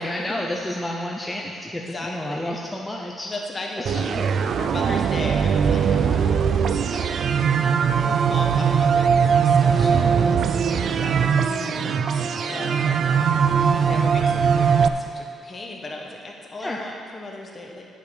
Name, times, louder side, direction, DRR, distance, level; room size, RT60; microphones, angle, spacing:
voice 1, 0.0-3.3 3.8-4.2 11.4-12.3 16.6-16.8, left 1 dB, 10° left, -2 dB, 0.7 m, -31 dB
voice 2, 1.8-2.6 3.2-4.1 4.6-6.2 6.9-7.3 8.0-11.7 12.5-13.0 13.6-14.7 15.0-17.8, left 2 dB, 30° left, 0 dB, 1.4 m, -36 dB
sound 1, 3.9-14.9, right 7 dB, 60° right, 0.4 m, -20 dB
10.0 x 6.7 x 5.0 m, 2.3 s
cardioid pair, 90°, 0 cm